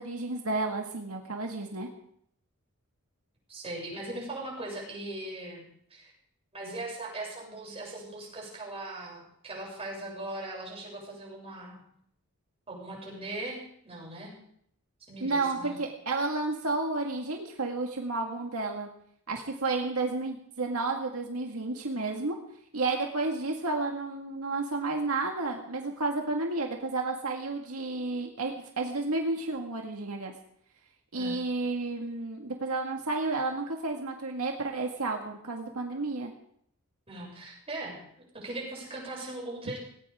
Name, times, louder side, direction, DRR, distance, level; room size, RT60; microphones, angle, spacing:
voice 1, 0.0-1.9 15.2-18.9 19.3-22.4 22.7-30.3 31.1-36.3, right 3 dB, 85° right, 1 dB, 1.9 m, -31 dB
voice 2, 3.5-5.7 5.9-6.1 6.5-11.8 12.7-14.3 15.0-15.8 31.1-31.4 37.1-38.0 38.3-39.8, right 2 dB, 30° right, -3 dB, 7.4 m, -39 dB
19.0 x 17.5 x 3.7 m, 0.68 s
head